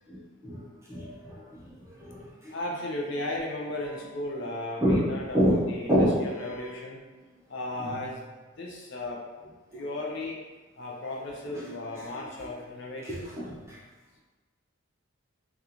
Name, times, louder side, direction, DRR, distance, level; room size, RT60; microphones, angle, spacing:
voice 1, 0.1-1.7 2.0-2.5 4.8-6.6 7.8-8.1 9.7-9.8 11.5-12.2 13.0-13.8, equal, 15° right, -7 dB, 0.7 m, -29 dB
voice 2, 2.5-6.0 6.2-7.0 7.5-8.3 8.6-9.2 9.7-10.4 10.8-13.3, left 1 dB, 55° left, -2 dB, 0.5 m, -35 dB
3.6 x 2.4 x 2.8 m, 1.2 s
head